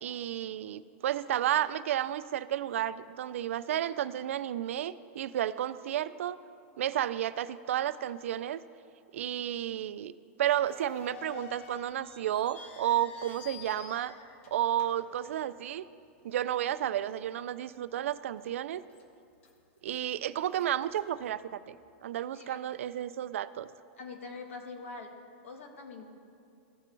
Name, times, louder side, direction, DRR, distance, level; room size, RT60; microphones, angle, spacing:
voice 1, 0.0-6.4 6.8-8.6 9.1-10.1 10.4-14.1 14.5-15.8 16.2-18.8 19.8-21.8 22.0-23.7, right 11 dB, 80° right, 15 dB, 0.4 m, -32 dB
sound 1, 10.6-15.9 16.2-16.3 17.1-17.3 17.7-17.8 18.4-19.0 19.4-21.9, left 8 dB, 70° left, 1.1 m, -51 dB
voice 2, 24.0-25.1 25.4-26.1, left 4 dB, 90° left, 4 dB, 1.3 m, -44 dB
15.5 x 5.2 x 3.3 m, 2.4 s
supercardioid pair, 175°, 7 cm